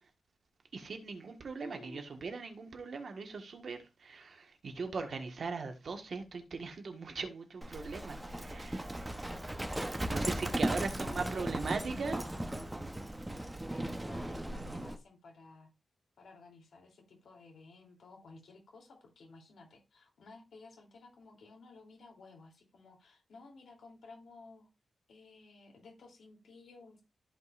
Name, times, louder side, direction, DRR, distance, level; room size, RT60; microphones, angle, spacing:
voice 1, 0.7-8.8 10.1-12.2, right 4 dB, 55° right, 1.5 m, -39 dB
voice 2, 1.6-2.0 10.5-12.7 13.7-15.7 16.2-24.7 25.1-27.0, left 3 dB, 80° left, 3.2 m, -55 dB
Livestock farm animals working animals, 7.6-15.0, right 1 dB, 10° right, 0.9 m, -37 dB
14.0 x 5.3 x 2.5 m
wide cardioid pair, 165°, 0 cm